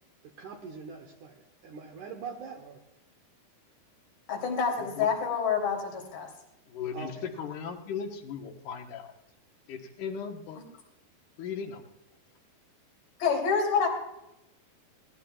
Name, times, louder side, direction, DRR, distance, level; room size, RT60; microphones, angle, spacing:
voice 1, 0.2-2.8 6.9-7.3, right 5 dB, 65° right, 2 dB, 2.1 m, -43 dB
voice 2, 4.3-6.3 13.2-13.9, left 6 dB, 85° left, 0 dB, 5.5 m, -27 dB
voice 3, 6.7-9.1 9.7-10.6 11.4-11.8, left 6 dB, 65° left, 3 dB, 2.4 m, -37 dB
21.5 x 17.0 x 2.4 m, 0.89 s
omnidirectional pair, 4.7 m